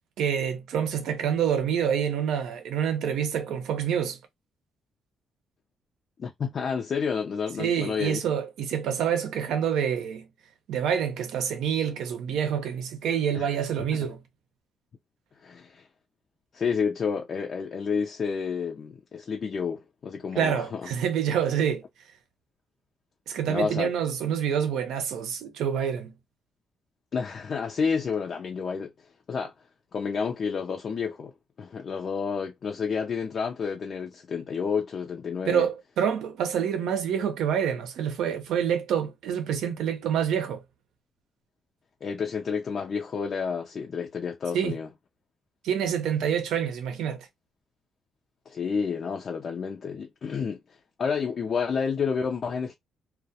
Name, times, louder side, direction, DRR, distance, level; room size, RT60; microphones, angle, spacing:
voice 1, 0.2-4.2 7.6-10.3 10.7-14.2 20.4-21.8 23.3-26.1 35.5-40.6 44.5-44.8 45.6-47.3, right 8 dB, 80° right, 0.6 m, -27 dB
voice 2, 6.2-8.2 13.3-13.6 13.9-14.1 15.4-15.9 16.5-20.9 23.4-23.9 27.1-28.9 29.3-29.5 29.9-35.7 42.0-44.9 48.5-52.7, left 6 dB, 50° left, 0.4 m, -30 dB
2.3 x 2.1 x 2.7 m
cardioid pair, 90°, 0 cm